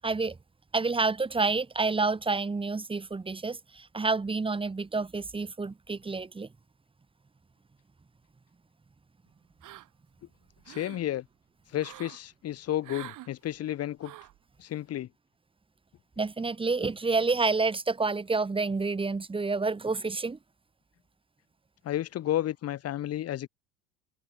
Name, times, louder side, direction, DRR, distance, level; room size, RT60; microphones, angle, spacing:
voice 1, 0.0-0.4 0.7-6.5 16.2-20.4, right 3 dB, 15° right, 1.3 m, -29 dB
sound 1, 9.6-10.1 10.5-11.0 11.8-12.2 12.8-13.3 14.0-14.4, right 15 dB, 50° right, 6.3 m, -46 dB
voice 2, 10.7-11.2 11.7-14.1 14.6-15.1 21.8-23.5, left 12 dB, 40° left, 1.4 m, -32 dB
figure-of-eight pair, 65°, 39 cm